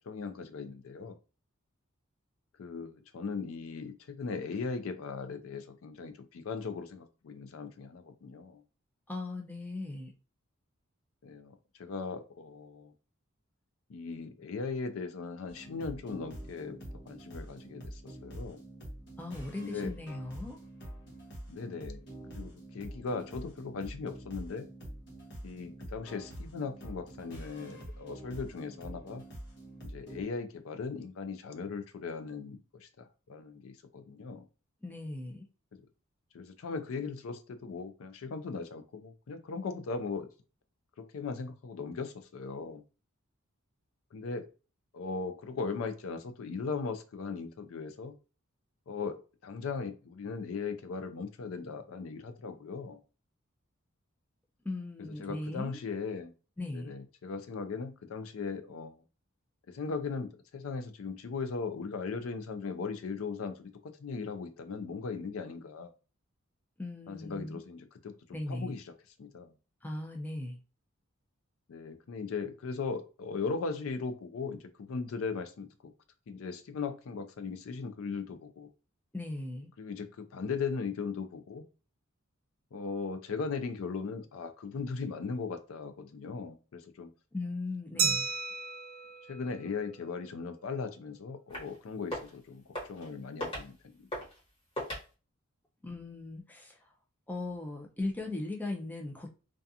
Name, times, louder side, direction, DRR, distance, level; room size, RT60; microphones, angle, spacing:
voice 1, 0.1-1.1 2.6-8.6 11.2-12.9 13.9-16.8 17.1-18.6 19.6-19.9 21.5-22.0 22.3-24.7 25.4-29.2 29.8-34.5 36.3-40.3 41.1-42.8 44.1-44.5 44.9-48.1 48.9-53.0 55.0-56.3 56.7-59.0 59.7-63.7 64.0-65.9 67.1-68.1 68.5-68.8 69.2-69.5 71.7-75.7 76.3-78.7 79.8-81.6 82.7-87.1 87.9-88.2 89.3-92.6 92.9-94.1, left 4 dB, 70° left, 8 dB, 0.4 m, -38 dB
voice 2, 9.1-10.1 19.2-20.6 34.8-35.4 54.6-55.8 56.6-56.9 66.8-67.6 68.3-68.8 69.8-70.6 79.1-79.7 87.3-88.3 95.8-96.8 97.3-99.3, left 2 dB, 10° left, 2 dB, 0.4 m, -38 dB
sound 1, 15.5-30.2, right 1 dB, 55° left, 0.9 m, -46 dB
Glass, 88.0-90.5, right 5 dB, 70° right, 0.6 m, -34 dB
sound 2, 91.5-91.8 92.0-92.4 92.7-93.1 93.4-93.7 94.1-94.4 94.8-95.0, equal, 25° left, 1.2 m, -38 dB
2.4 x 2.3 x 2.6 m, 0.34 s
head